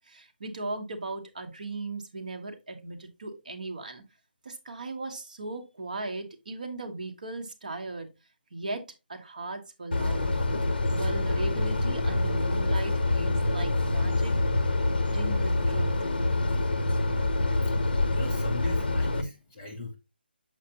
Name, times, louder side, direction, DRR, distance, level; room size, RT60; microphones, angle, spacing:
voice 1, 0.1-4.0 4.4-8.1 8.5-10.3 10.9-14.3 15.1-16.1, right 2 dB, 45° right, 5 dB, 1.0 m, -37 dB
sound 1, 9.9-19.2, left 2 dB, 55° left, 0.9 m, -26 dB
voice 2, 18.1-20.0, left 3 dB, 10° left, -1 dB, 0.5 m, -39 dB
6.8 x 4.9 x 2.8 m, 0.25 s
hypercardioid pair, 180°, 6 cm